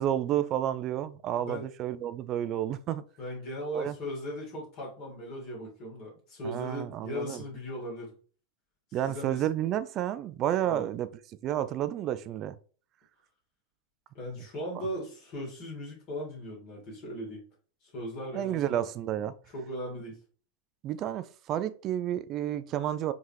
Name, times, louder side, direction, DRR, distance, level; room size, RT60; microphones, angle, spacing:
voice 1, 0.0-3.0 3.7-3.9 6.4-7.4 8.9-11.1 11.4-12.5 18.3-19.3 20.8-23.1, right 11 dB, 35° right, 0.3 m, -31 dB
voice 2, 3.2-8.1 8.9-9.4 10.6-10.9 14.1-17.4 17.8-18.8 19.5-20.2, equal, 45° left, 1.9 m, -38 dB
4.5 x 2.8 x 3.2 m
figure-of-eight pair, 90°, 0 cm